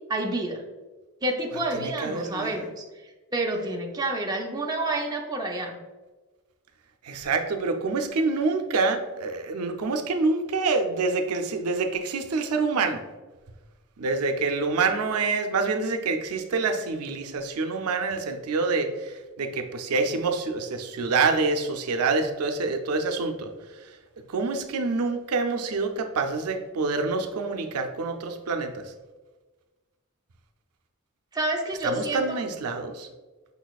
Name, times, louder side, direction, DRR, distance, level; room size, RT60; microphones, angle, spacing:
voice 1, 0.1-0.6 1.2-2.8 3.3-5.8 31.3-32.4, right 2 dB, 20° right, 1 dB, 0.6 m, -29 dB
voice 2, 1.7-2.7 7.0-13.0 14.0-23.5 24.3-28.8 31.8-33.1, right 4 dB, 85° right, 6 dB, 0.5 m, -26 dB
5.4 x 4.0 x 2.3 m, 1.2 s
head